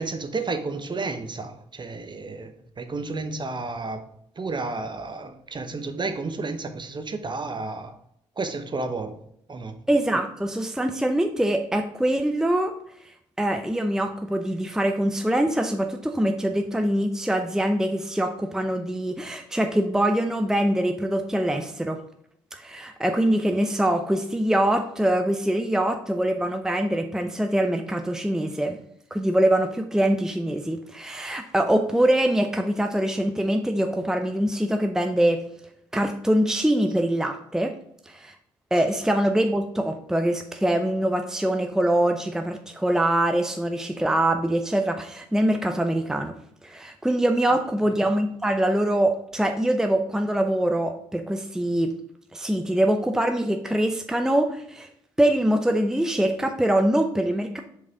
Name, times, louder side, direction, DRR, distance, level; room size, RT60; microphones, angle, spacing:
voice 1, 0.0-4.0 4.4-8.0 8.4-9.2 9.5-9.7 38.7-38.8 47.5-47.9, right 3 dB, 30° right, 1.0 m, -32 dB
voice 2, 9.9-12.7 13.4-22.0 22.5-28.8 29.1-35.5 35.9-37.7 38.1-38.3 38.7-46.3 46.6-51.9 52.3-54.9 55.2-57.6, right 1 dB, 5° right, 0.7 m, -23 dB
6.6 x 5.4 x 3.4 m
hypercardioid pair, 45°, 14 cm